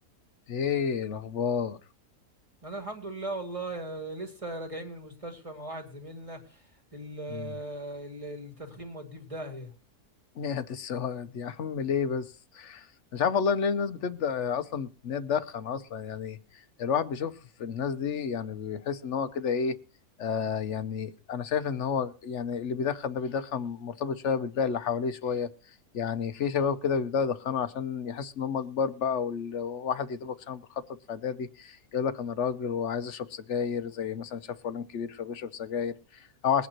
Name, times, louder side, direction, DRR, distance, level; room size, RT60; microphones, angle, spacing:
voice 1, 0.5-1.8 7.3-7.5 10.4-12.9 13.1-16.4 16.8-17.3 17.6-19.7 20.2-25.5 25.9-30.8 31.1-36.7, left 6 dB, 60° left, 1.0 m, -30 dB
voice 2, 2.6-6.4 6.9-9.7, right 2 dB, 20° right, 2.4 m, -38 dB
22.0 x 8.9 x 3.0 m
omnidirectional pair, 1.6 m